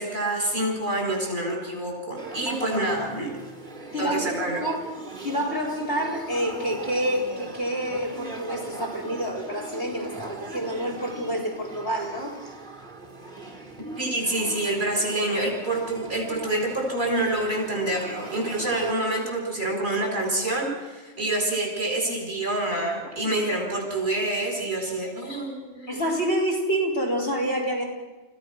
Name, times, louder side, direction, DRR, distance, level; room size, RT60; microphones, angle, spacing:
voice 1, 0.0-3.3 4.0-4.7 14.0-26.0, right 1 dB, 65° right, 0 dB, 7.1 m, -27 dB
Male speech man speaking / Child speech kid speaking / Conversation, 2.2-18.9, right 3 dB, 45° right, 2.7 m, -40 dB
voice 2, 2.5-2.9 3.9-4.8 5.2-12.4 23.2-23.3 25.9-27.8, right 1 dB, 70° left, 2 dB, 4.7 m, -28 dB
29.5 x 16.0 x 6.4 m, 1.2 s
omnidirectional pair, 1.2 m